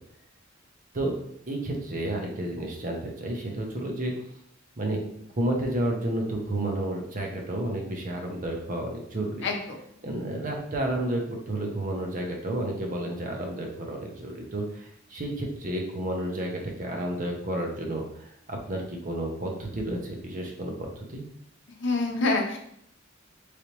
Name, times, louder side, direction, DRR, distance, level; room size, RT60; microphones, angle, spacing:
voice 1, 1.5-4.1 4.8-9.5 10.0-21.2, right 1 dB, 40° right, 1 dB, 0.7 m, -31 dB
voice 2, 9.4-9.8 21.8-22.6, left 3 dB, 60° left, 2 dB, 0.7 m, -26 dB
4.0 x 3.3 x 3.0 m, 0.70 s
head